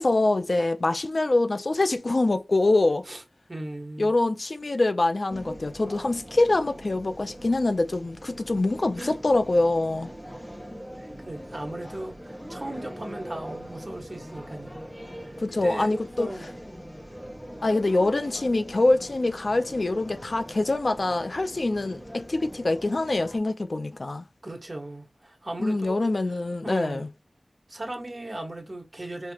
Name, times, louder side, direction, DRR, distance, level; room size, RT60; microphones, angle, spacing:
voice 1, 0.0-3.1 4.0-10.1 15.4-16.3 17.6-24.2 25.6-27.1, left 2 dB, 60° left, 0.4 m, -24 dB
voice 2, 3.5-4.1 9.0-9.1 11.0-14.7 15.0-16.5 24.4-26.0 26.6-27.0 27.7-29.3, right 1 dB, 40° right, 1.4 m, -37 dB
sound 1, 5.3-23.4, equal, 5° left, 1.2 m, -42 dB
5.1 x 2.8 x 2.8 m
wide cardioid pair, 60°, 0 cm